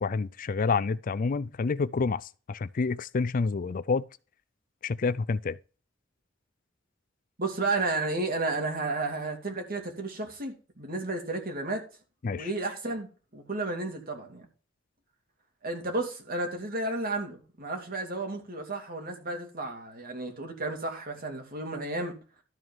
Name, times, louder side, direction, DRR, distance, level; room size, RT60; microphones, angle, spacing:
voice 1, 0.0-4.0 4.8-5.6 12.2-12.5, left 4 dB, 45° left, 0.4 m, -28 dB
voice 2, 7.4-11.8 12.3-14.4 15.6-22.2, right 2 dB, 50° right, 2.8 m, -32 dB
13.0 x 4.7 x 5.6 m
head